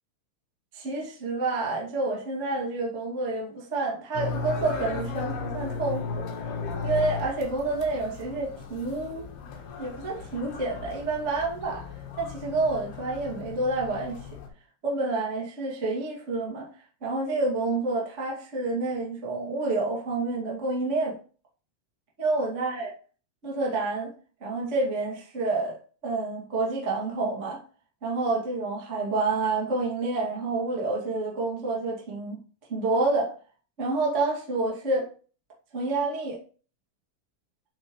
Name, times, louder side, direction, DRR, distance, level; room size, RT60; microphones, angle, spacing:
voice 1, 0.7-6.2 6.8-9.3 9.8-11.8 12.2-14.2 14.8-16.6 17.0-21.1 22.2-22.9 23.4-24.1 24.4-25.8 26.0-27.6 28.0-32.4 32.7-33.3 33.8-35.1 35.7-36.4, right 3 dB, 75° right, 0.6 m, -28 dB
sound 1, 4.1-14.5, left 4 dB, 65° left, 2.7 m, -36 dB
11.5 x 4.4 x 3.2 m
omnidirectional pair, 5.6 m